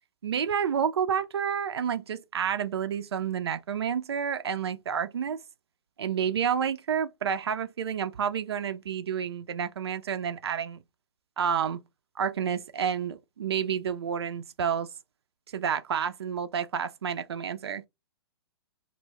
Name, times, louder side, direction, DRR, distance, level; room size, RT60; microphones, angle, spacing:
voice 1, 0.2-5.4 6.0-10.8 11.4-11.8 12.2-14.9 15.5-17.8, right 7 dB, 70° right, 0.4 m, -29 dB
2.2 x 2.0 x 3.3 m
figure-of-eight pair, 115°, 14 cm